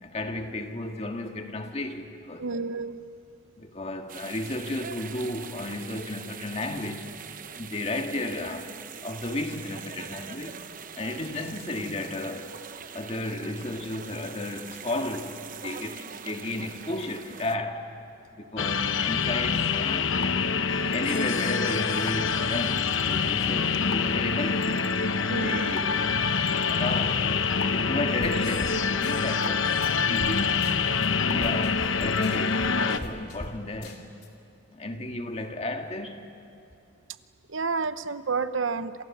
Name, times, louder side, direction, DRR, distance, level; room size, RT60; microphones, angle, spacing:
voice 1, 0.0-2.6 3.6-7.2 7.5-10.6 10.9-12.5 12.9-17.9 18.3-20.1 20.9-24.8 25.2-26.1 26.4-27.4 27.7-30.7 31.0-34.0 34.7-36.3, left 2 dB, 35° left, 1.9 m, -33 dB
voice 2, 2.4-3.0 25.3-25.7 31.4-31.5 37.5-39.0, right 4 dB, 80° right, 0.9 m, -30 dB
sound 1, 4.1-17.6, right 7 dB, 45° right, 0.9 m, -43 dB
sound 2, 18.6-33.0, left 5 dB, 80° left, 1.0 m, -26 dB
sound 3, 28.2-28.3 28.6-28.7 29.0-29.5 29.8-29.9 30.2-30.3 30.6-31.1 31.4-33.5 33.8-34.3, left 1 dB, 55° left, 2.9 m, -40 dB
28.0 x 27.5 x 7.3 m
head